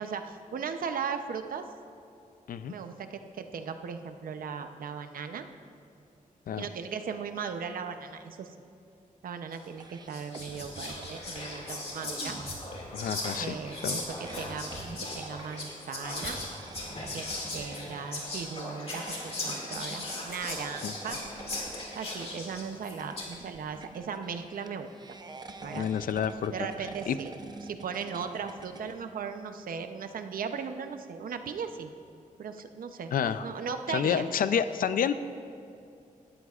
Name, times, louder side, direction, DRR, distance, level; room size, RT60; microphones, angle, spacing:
voice 1, 0.0-1.6 2.7-5.5 6.6-8.5 9.2-12.4 13.3-14.7 15.0-16.4 17.1-17.3 17.5-21.2 21.9-24.9 25.6-25.9 26.5-27.3 27.6-31.9 32.4-33.1 33.4-34.2, right 6 dB, 85° right, 7 dB, 0.7 m, -37 dB
Whispering, 9.5-9.7 10.1-23.4, left 2 dB, 45° left, 2.2 m, -38 dB
sound 1, 9.7-29.0, right 3 dB, 30° right, 0.6 m, -47 dB
voice 2, 12.9-13.6 13.8-14.0 20.8-20.9 25.7-26.5 26.8-27.2 33.1-33.5 33.9-35.1, left 8 dB, 80° left, 12 dB, 0.5 m, -29 dB
17.5 x 12.5 x 2.4 m, 2.6 s
wide cardioid pair, 160°, 14 cm